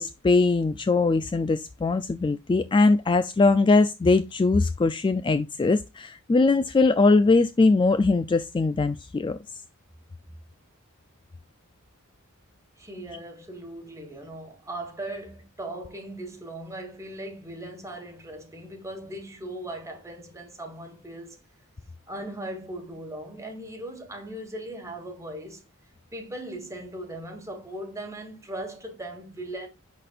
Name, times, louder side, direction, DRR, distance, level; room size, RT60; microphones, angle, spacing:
voice 1, 0.0-9.4, left 3 dB, 20° left, 0.3 m, -21 dB
voice 2, 12.8-21.4 22.1-25.6 26.1-29.7, right 1 dB, 15° right, 1.5 m, -38 dB
10.5 x 4.3 x 2.4 m
head